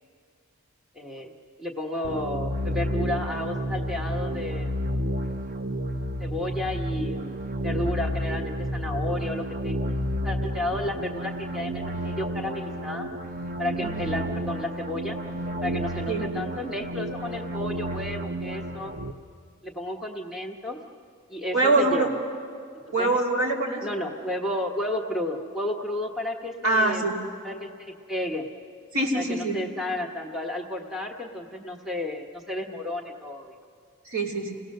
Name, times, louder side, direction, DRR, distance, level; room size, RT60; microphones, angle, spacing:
voice 1, 0.9-1.3 1.6-4.7 6.2-9.9 10.2-13.1 13.6-15.2 15.6-18.9 19.6-20.8 21.3-22.2 23.0-23.2 23.8-27.1 27.4-28.5 29.1-33.5, left 1 dB, ahead, 1 dB, 1.1 m, -32 dB
sound 1, 2.0-19.1, equal, 40° right, 0.8 m, -31 dB
voice 2, 21.5-22.1 22.9-23.8 26.6-27.1 28.9-29.6 34.1-34.5, right 2 dB, 80° right, -1 dB, 3.1 m, -23 dB
30.0 x 17.5 x 6.5 m, 2.3 s
head